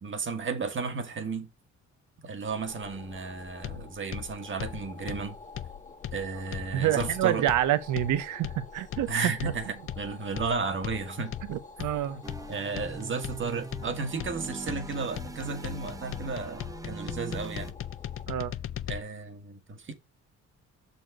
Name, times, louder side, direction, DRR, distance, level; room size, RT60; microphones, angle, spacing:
voice 1, 0.0-1.5 2.2-5.4 6.1-7.5 9.1-11.3 12.5-17.7 18.9-19.9, right 4 dB, 40° right, 1.5 m, -33 dB
sound 1, 2.5-18.3, left 3 dB, 25° left, 1.3 m, -49 dB
sound 2, 3.6-19.0, left 11 dB, 45° left, 0.5 m, -39 dB
voice 2, 6.7-9.3 11.5-12.2 18.3-18.5, right 12 dB, 80° right, 0.8 m, -27 dB
sound 3, 12.2-17.7, right 3 dB, 10° right, 0.4 m, -42 dB
6.3 x 4.2 x 4.7 m
cardioid pair, 90°, 30 cm